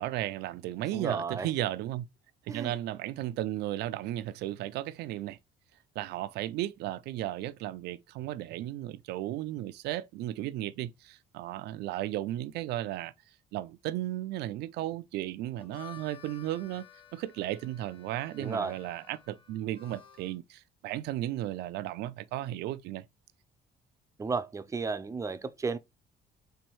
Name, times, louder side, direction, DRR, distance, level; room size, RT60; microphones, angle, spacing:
voice 1, 0.0-2.1 2.5-5.4 6.0-13.1 13.5-23.0, right 14 dB, 80° right, 0.4 m, -35 dB
voice 2, 0.9-1.5 2.5-2.7 18.4-18.7 24.2-25.8, right 4 dB, 20° right, 0.4 m, -33 dB
Harmonica, 15.4-20.4, left 9 dB, 30° left, 0.7 m, -53 dB
4.4 x 2.6 x 4.4 m
cardioid pair, 110°, 17 cm